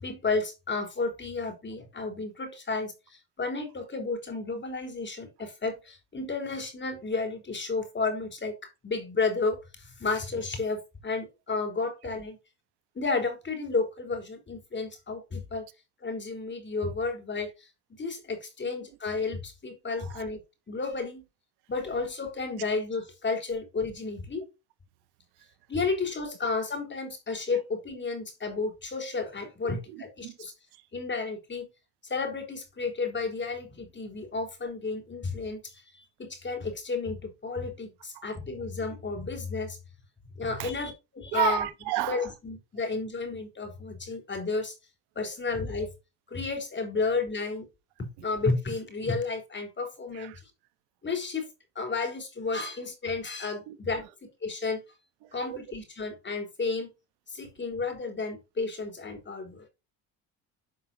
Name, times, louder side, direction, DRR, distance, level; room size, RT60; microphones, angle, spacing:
voice 1, 0.0-8.6 8.8-12.4 13.0-15.7 16.0-20.4 20.7-21.3 21.7-24.5 25.7-30.5 30.9-31.7 32.0-39.8 40.4-41.7 42.0-44.8 45.2-45.9 46.3-47.7 48.2-50.3 51.0-51.5 51.8-54.0 54.4-54.8 55.3-56.9 57.3-59.7, left 4 dB, 30° left, 3.9 m, -32 dB
voice 2, 29.6-30.4 30.7-30.8 38.1-38.3 40.6-40.7 41.3-42.3 50.1-50.4 53.7-53.8 55.2-55.6, right 17 dB, 75° right, 1.2 m, -33 dB
11.0 x 5.5 x 4.4 m
supercardioid pair, 90°, 39 cm